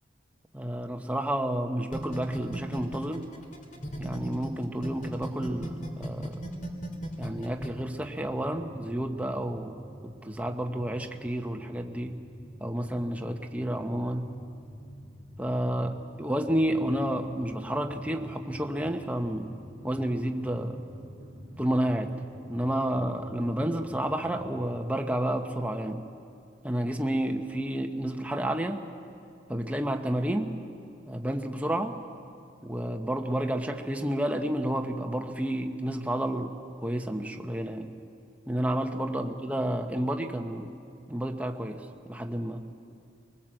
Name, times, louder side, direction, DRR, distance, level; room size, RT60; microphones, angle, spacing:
voice 1, 0.5-3.3 4.0-6.4 7.2-9.7 10.0-12.2 12.6-14.3 15.4-15.9 16.2-19.5 19.8-20.8 21.6-22.2 22.5-26.1 26.6-28.8 29.5-30.5 31.1-32.0 32.6-37.9 38.5-40.8 41.1-42.6, right 1 dB, 10° right, 4 dB, 1.1 m, -30 dB
sound 1, 1.9-4.5 4.8-7.7, right 1 dB, 45° left, 2.5 m, -35 dB
sound 2, 4.7-24.6, equal, 65° left, 3.8 m, -48 dB
24.0 x 19.5 x 7.7 m, 2.5 s
head